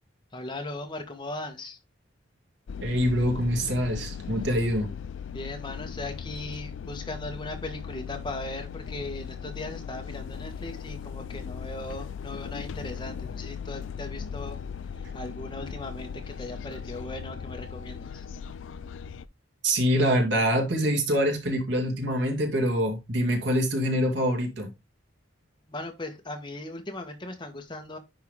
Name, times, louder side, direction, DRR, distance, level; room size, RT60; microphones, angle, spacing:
voice 1, 0.3-1.8 5.3-14.6 14.9-18.2 25.7-28.0, left 2 dB, 25° left, 1.5 m, -38 dB
sound 1, 2.7-19.2, left 7 dB, 75° left, 0.4 m, -38 dB
voice 2, 2.8-4.9 19.6-24.7, equal, 65° right, 2.6 m, -25 dB
10.5 x 3.8 x 3.5 m
head